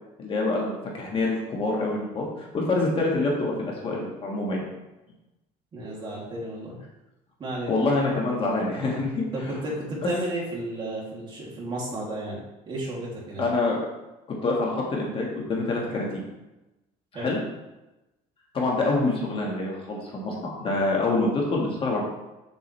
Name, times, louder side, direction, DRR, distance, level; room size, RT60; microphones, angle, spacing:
voice 1, 0.2-4.6 7.7-9.6 10.0-10.1 13.4-13.8 14.3-16.2 17.2-17.4 18.5-22.0, left 2 dB, 35° left, -2 dB, 1.8 m, -26 dB
voice 2, 5.7-6.8 7.4-7.8 9.3-12.4 12.7-13.5 17.1-17.3, right 1 dB, 30° right, -5 dB, 2.9 m, -32 dB
7.9 x 7.2 x 3.4 m, 1.0 s
cardioid pair, 140°, 16 cm